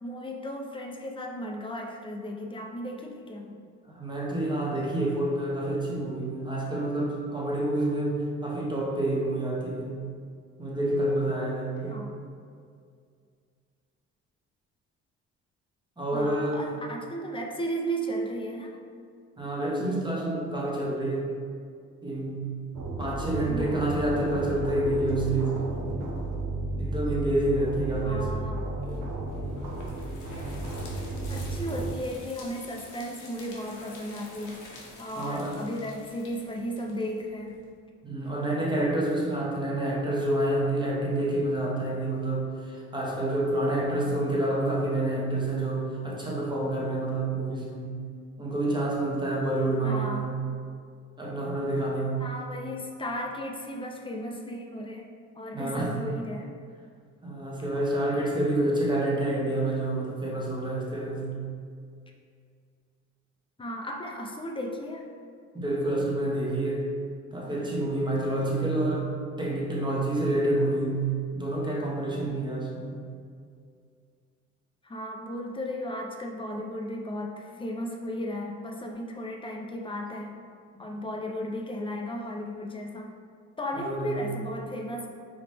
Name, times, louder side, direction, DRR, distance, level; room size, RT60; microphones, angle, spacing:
voice 1, 0.0-3.6 11.9-12.2 16.1-18.8 23.5-23.9 28.0-29.1 31.3-34.6 35.0-37.6 49.8-50.4 52.2-55.1 55.4-56.5 63.6-65.1 74.8-80.4 80.8-83.2 83.6-85.1, equal, 15° left, 2 dB, 0.6 m, -35 dB
voice 2, 3.9-10.0 10.6-12.0 16.0-16.7 19.4-21.4 22.0-22.5 23.0-25.7 26.8-28.4 35.2-35.6 38.0-48.0 48.4-50.4 51.2-52.2 55.5-56.0 57.2-61.4 65.5-66.9 67.3-69.1 69.4-71.1 71.3-73.0 80.8-80.9 83.8-84.2, right 1 dB, 15° right, -3 dB, 1.0 m, -28 dB
sound 1, 22.7-31.9, right 2 dB, 85° right, 0.8 m, -33 dB
sound 2, 28.8-37.7, left 2 dB, 90° left, 1.0 m, -48 dB
4.8 x 3.1 x 3.4 m, 2.2 s
cardioid pair, 90°, 30 cm